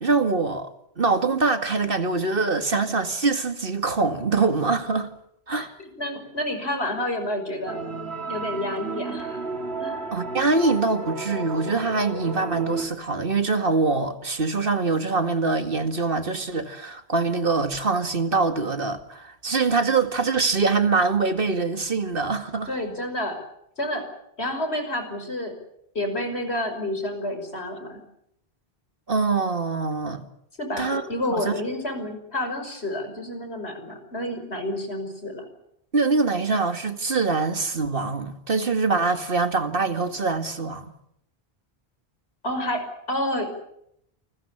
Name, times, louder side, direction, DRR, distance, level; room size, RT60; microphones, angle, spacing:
voice 1, 0.0-0.7 1.0-5.1 5.5-5.7 10.1-22.7 29.1-30.3 30.8-31.0 31.3-31.5 35.9-40.9, right 4 dB, 60° right, 2.3 m, -24 dB
voice 2, 5.5-7.8 8.3-9.5 9.8-10.0 22.7-23.4 23.8-24.0 24.4-25.5 25.9-28.0 30.6-35.5 42.4-42.8 43.1-43.6, left 1 dB, 85° left, 5.9 m, -29 dB
sound 1, 7.7-12.9, right 3 dB, 80° right, 3.1 m, -32 dB
28.5 x 21.0 x 7.2 m
omnidirectional pair, 1.1 m